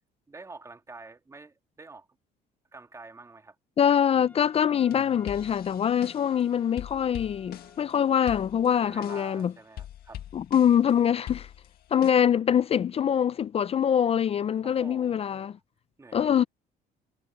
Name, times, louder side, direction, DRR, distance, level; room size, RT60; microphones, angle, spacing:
voice 1, 0.3-2.1 2.7-3.6 8.8-10.2 14.6-15.5 16.0-16.5, right 3 dB, 15° right, 2.2 m, -47 dB
voice 2, 3.8-9.5 10.3-11.5 11.9-15.6 16.1-16.4, left 9 dB, 35° left, 0.4 m, -24 dB
Wind instrument woodwind instrument, 4.1-8.8, left 2 dB, 10° left, 7.9 m, -56 dB
sound 1, 4.9-6.4 6.8-7.9 8.3-9.4 9.8-10.9 11.3-12.1, left 11 dB, 65° left, 1.9 m, -43 dB
cardioid pair, 110°, 17 cm